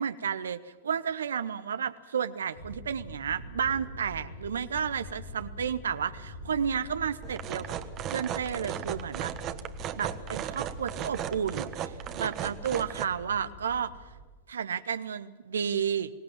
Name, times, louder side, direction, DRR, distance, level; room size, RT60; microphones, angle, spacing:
voice 1, 0.0-7.7 8.1-9.3 9.9-13.9 14.5-16.1, right 7 dB, 75° right, 12 dB, 0.8 m, -32 dB
sound 1, 2.5-14.3, left 1 dB, 90° left, 4.6 m, -44 dB
sound 2, 7.2-13.1, right 11 dB, 40° right, 1.4 m, -36 dB
24.5 x 18.0 x 7.4 m, 1.3 s
figure-of-eight pair, 95°, 0 cm